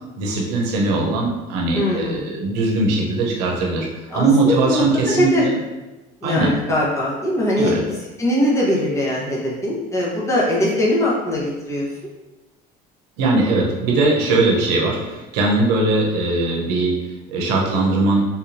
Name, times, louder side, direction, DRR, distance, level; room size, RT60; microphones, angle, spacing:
voice 1, 0.2-3.9 4.1-5.6 6.2-6.6 7.6-7.8 13.2-16.9 17.3-18.2, right 2 dB, 85° right, -1 dB, 0.8 m, -20 dB
voice 2, 1.7-2.3 4.1-5.4 6.2-11.9, left 1 dB, 15° left, -5 dB, 1.0 m, -21 dB
3.6 x 2.8 x 2.6 m, 1.1 s
supercardioid pair, 100°, 20 cm